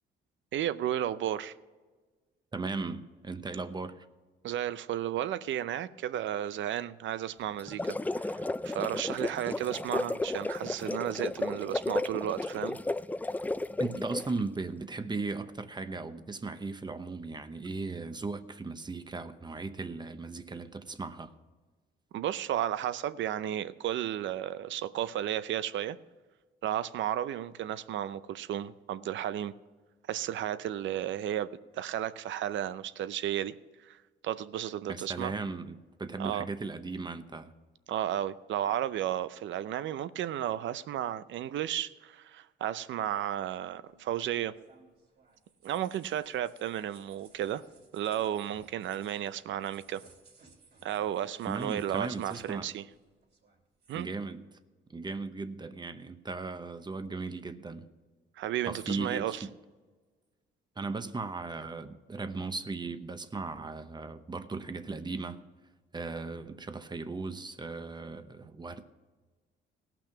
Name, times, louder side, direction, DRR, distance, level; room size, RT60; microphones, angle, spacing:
voice 1, 0.5-1.5 4.4-12.8 22.1-26.0 26.6-29.5 30.1-35.3 36.2-36.4 37.9-44.6 45.6-47.6 47.9-50.0 50.8-52.8 53.9-54.1 58.4-59.4, right 11 dB, 70° right, 0.6 m, -33 dB
voice 2, 2.5-4.1 13.8-21.3 34.9-37.5 51.5-52.7 54.0-54.5 54.9-57.9 58.6-59.5 60.8-65.4 65.9-68.9, right 3 dB, 20° right, 0.8 m, -37 dB
sound 1, 7.6-14.4, left 2 dB, 10° left, 0.3 m, -33 dB
sound 2, 43.9-53.0 53.2-54.1, right 4 dB, 55° right, 3.0 m, -61 dB
17.5 x 6.0 x 5.9 m
cardioid pair, 90°, 20 cm